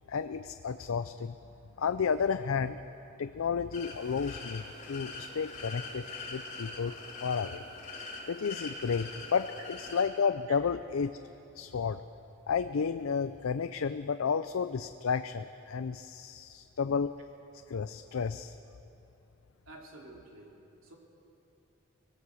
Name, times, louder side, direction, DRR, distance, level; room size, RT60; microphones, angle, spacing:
voice 1, 0.1-1.3 1.8-2.8 3.2-6.0 6.3-7.6 8.3-9.5 9.8-11.2 11.6-12.0 12.5-17.1 17.7-18.6, left 6 dB, 80° left, 11 dB, 0.5 m, -32 dB
sound 1, 3.7-10.1, left 3 dB, 35° left, 2.9 m, -43 dB
voice 2, 19.6-21.0, right 2 dB, 75° right, 0 dB, 3.0 m, -51 dB
24.0 x 17.0 x 6.4 m, 2.9 s
head